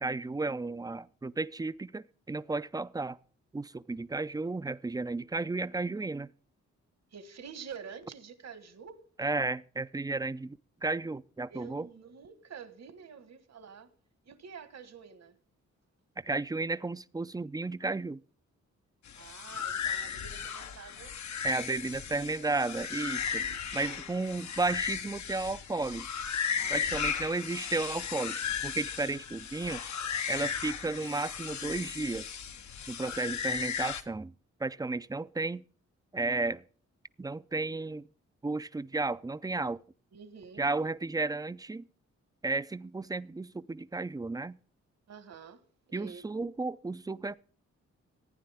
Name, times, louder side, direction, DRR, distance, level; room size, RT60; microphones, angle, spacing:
voice 1, 0.0-3.2 3.5-6.3 9.2-11.9 16.2-18.2 21.4-23.5 23.7-26.1 26.7-28.4 28.6-29.8 30.3-32.4 32.9-34.3 34.6-35.6 36.1-36.6 37.2-38.1 38.4-39.8 40.6-41.9 42.4-44.6 45.9-47.4, right 3 dB, 15° right, 0.4 m, -33 dB
voice 2, 7.1-9.1 11.5-13.9 14.2-15.4 19.2-21.2 21.4-21.7 23.8-24.0 26.6-27.2 40.1-40.7 45.1-46.2, right 6 dB, 65° right, 1.4 m, -48 dB
sound 1, 19.1-34.0, left 7 dB, 75° left, 1.0 m, -36 dB
15.5 x 9.5 x 3.5 m
cardioid pair, 75°, 29 cm